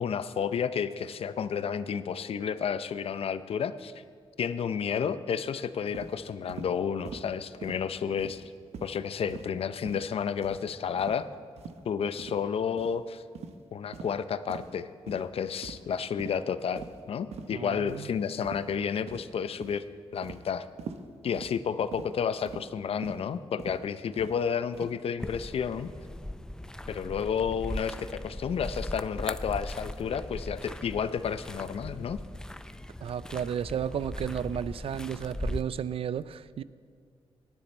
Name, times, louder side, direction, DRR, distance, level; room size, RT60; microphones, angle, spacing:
voice 1, 0.0-4.0 4.4-8.4 8.8-11.3 11.8-13.2 13.7-19.8 20.1-20.7 21.2-25.9 26.9-32.2, left 7 dB, 65° left, 13 dB, 0.6 m, -31 dB
sound 1, 5.9-6.1 6.5-6.7 7.0-7.3 7.6-7.8 8.2-8.5 8.7-8.9 9.3-9.5 9.8-10.1 10.4-10.6 11.0-11.2 11.6-11.8 12.2-12.4 12.8-12.9 13.3-13.6 13.9-14.1 14.5-14.7 15.1-15.3 15.6-15.9 16.2-16.4 16.8-17.0 17.3-17.5 17.9-18.0 18.4-18.7 19.1-19.4 19.6-19.8 20.2-20.4 20.8-21.0 21.3-21.5 21.9-22.1 22.5-22.7 23.0-23.2 23.6-23.8 24.1-24.3 24.7-25.0, right 6 dB, 85° right, 0.8 m, -43 dB
voice 2, 17.5-18.1 33.0-36.6, right 8 dB, 65° right, 17 dB, 0.4 m, -33 dB
sound 2, 25.2-35.6, left 1 dB, 5° left, 0.4 m, -39 dB
18.5 x 9.8 x 4.4 m, 2.1 s
cardioid pair, 100°, 10 cm